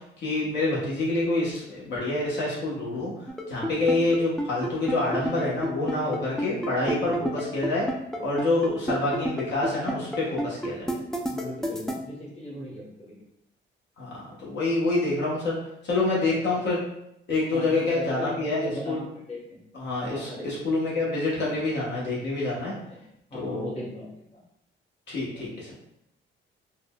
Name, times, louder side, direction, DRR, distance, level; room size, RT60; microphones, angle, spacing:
voice 1, 0.2-3.1 3.5-7.9 8.2-10.8 14.0-14.1 14.4-15.6 15.9-16.8 17.3-19.0 19.7-22.7 23.3-23.7 25.1-25.7, left 2 dB, 65° left, -6 dB, 0.9 m, -27 dB
sound 1, 3.3-12.0, right 1 dB, ahead, 0.3 m, -29 dB
voice 2, 11.3-13.2 17.5-19.6 20.1-20.7 21.3-21.5 22.7-23.0 23.3-24.4 25.3-25.7, left 1 dB, 30° left, -4 dB, 1.1 m, -38 dB
3.7 x 2.1 x 2.2 m, 0.79 s
cardioid pair, 90°, 20 cm